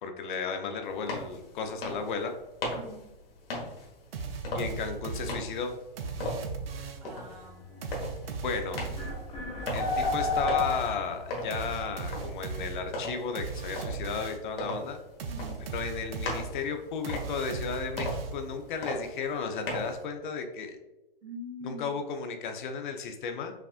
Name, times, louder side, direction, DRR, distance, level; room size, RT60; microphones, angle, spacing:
voice 1, 0.0-2.3 4.5-5.7 8.4-8.8 9.7-15.0 15.7-20.8 21.6-23.5, left 5 dB, 55° left, 6 dB, 0.8 m, -34 dB
sound 1, 0.8-20.0, left 1 dB, 75° left, 1.5 m, -39 dB
voice 2, 2.7-3.1 7.0-7.9 15.3-15.6 21.2-22.0, left 1 dB, 35° right, 0 dB, 1.3 m, -44 dB
sound 2, 4.1-7.2 7.8-14.6 15.2-18.7, right 4 dB, 80° right, 0.7 m, -38 dB
sound 3, 8.4-8.5 9.0-11.2, left 3 dB, 20° left, 0.8 m, -29 dB
5.8 x 2.5 x 2.5 m, 1.0 s
hypercardioid pair, 145°, 30 cm